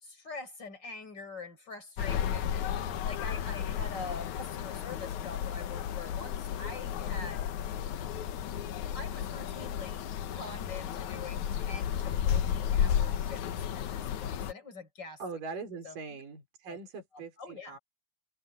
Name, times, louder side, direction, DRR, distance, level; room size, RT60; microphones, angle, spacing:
voice 1, 0.0-7.5 8.9-15.2 15.8-16.2 16.7-16.8 17.1-17.8, left 3 dB, 25° left, 5.7 m, -45 dB
sound 1, 2.0-14.5, left 9 dB, 65° left, 2.2 m, -33 dB
voice 2, 15.2-17.8, right 4 dB, 60° right, 6.6 m, -41 dB
omnidirectional pair, 4.4 m